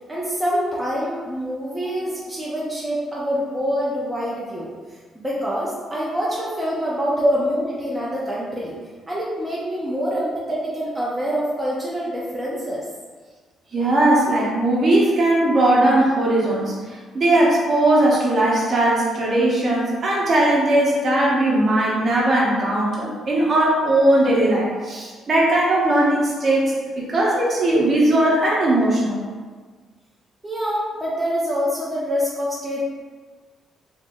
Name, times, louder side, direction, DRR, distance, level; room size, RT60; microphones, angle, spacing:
voice 1, 0.1-8.8 9.1-12.9 30.4-32.8, equal, 10° right, -6 dB, 0.6 m, -26 dB
voice 2, 13.7-16.8 17.1-29.2, right 1 dB, 45° right, -5 dB, 0.9 m, -18 dB
2.9 x 2.0 x 3.4 m, 1.5 s
cardioid pair, 90°, 0 cm